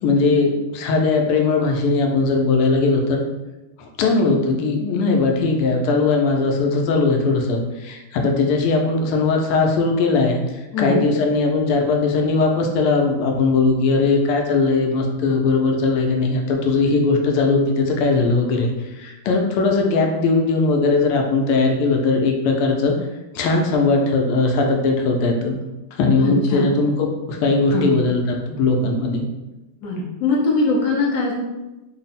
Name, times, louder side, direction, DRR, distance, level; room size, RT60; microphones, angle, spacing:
voice 1, 0.0-3.2 3.8-22.9 23.3-25.6 25.9-29.2, left 3 dB, 85° left, 2 dB, 1.5 m, -19 dB
voice 2, 10.7-11.0 26.2-26.7 27.7-27.9 29.8-31.3, left 2 dB, 60° left, -3 dB, 1.1 m, -21 dB
3.7 x 2.0 x 4.0 m, 1.0 s
omnidirectional pair, 2.4 m